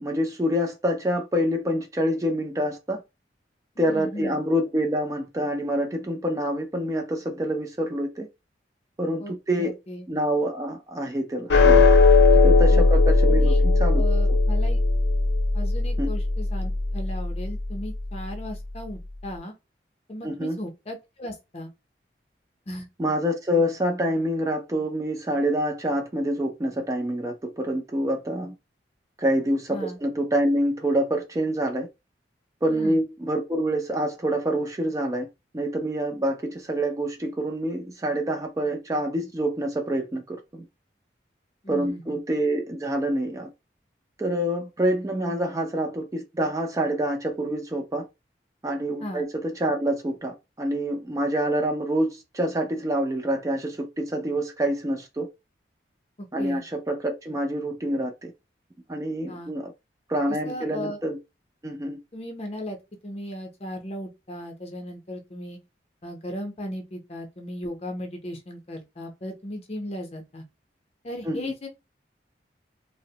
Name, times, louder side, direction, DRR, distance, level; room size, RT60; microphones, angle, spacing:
voice 1, 0.0-3.0 3.8-8.3 9.0-9.7 10.1-11.9 12.4-14.0 14.3-14.4 16.0-16.1 20.2-20.6 23.0-28.5 29.2-31.9 32.6-35.3 35.5-40.6 41.7-43.5 44.2-48.1 48.6-55.3 56.3-58.3 58.9-59.7 60.1-61.2 61.6-62.0 71.2-71.5, equal, 20° right, 0.3 m, -26 dB
voice 2, 3.8-4.4 9.2-10.1 12.3-12.4 12.7-12.9 13.3-13.6 13.9-14.8 15.5-19.5 20.1-21.7 22.7-22.9 29.7-30.0 32.7-33.0 41.6-42.2 49.0-49.3 56.2-56.6 59.3-59.5 60.3-61.0 62.1-62.8 63.0-65.6 66.0-70.4 71.0-71.7, equal, 35° left, 0.6 m, -36 dB
sound 1, 11.5-18.0, left 3 dB, 75° left, 0.6 m, -18 dB
2.8 x 2.0 x 2.7 m
head